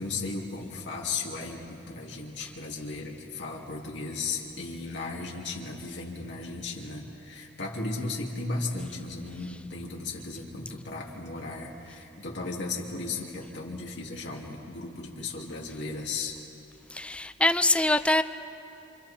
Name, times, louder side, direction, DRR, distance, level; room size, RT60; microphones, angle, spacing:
voice 1, 0.0-16.3, left 3 dB, 85° left, 2.8 m, -35 dB
voice 2, 16.9-18.2, left 1 dB, 5° left, 0.5 m, -24 dB
28.5 x 27.0 x 4.4 m
head